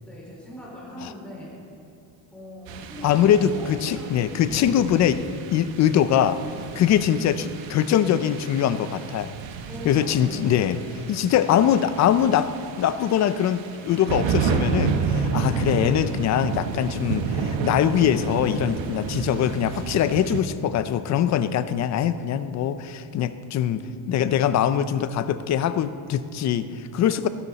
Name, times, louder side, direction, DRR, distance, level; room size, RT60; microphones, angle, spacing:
voice 1, 0.0-1.5 2.3-4.5 7.1-7.4 9.7-11.6 23.7-24.1, equal, ahead, -7 dB, 4.3 m, -40 dB
sound 1, 2.7-20.4, right 6 dB, 65° right, 1.1 m, -31 dB
voice 2, 3.0-5.2 5.5-6.4 6.8-9.3 9.8-10.8 11.1-12.5 12.8-23.8 24.1-27.3, left 9 dB, 35° left, 12 dB, 0.4 m, -22 dB
21.5 x 11.5 x 4.0 m, 2.5 s
cardioid pair, 170°, 49 cm